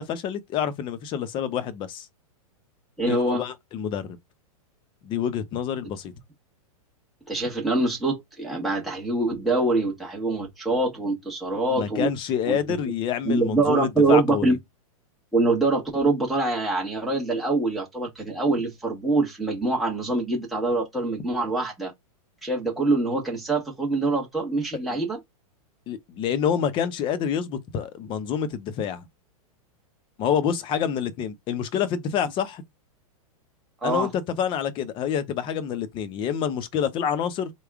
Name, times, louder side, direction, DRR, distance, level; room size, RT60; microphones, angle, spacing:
voice 1, 0.0-2.1 3.1-4.2 5.0-6.1 11.7-14.6 24.9-25.0 25.9-29.1 30.2-32.6 33.8-37.5, left 8 dB, 25° left, 0.6 m, -27 dB
voice 2, 3.0-3.4 7.3-12.1 12.5-12.8 13.2-14.6 15.3-21.9 22.4-25.2 33.8-34.1, right 2 dB, ahead, 1.1 m, -24 dB
3.4 x 2.2 x 3.5 m
hypercardioid pair, 145°, 19 cm